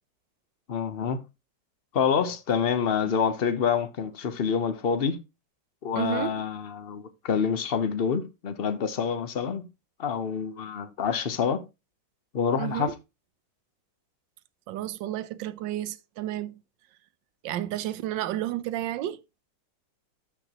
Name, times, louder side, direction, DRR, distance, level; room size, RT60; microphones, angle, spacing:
voice 1, 0.7-1.2 1.9-5.2 5.8-9.6 10.0-11.6 12.3-12.9, left 6 dB, 45° left, 0.8 m, -27 dB
voice 2, 6.0-6.3 12.6-12.9 14.7-16.6 17.4-19.2, right 13 dB, 80° right, 1.3 m, -31 dB
12.5 x 6.0 x 2.9 m
omnidirectional pair, 2.0 m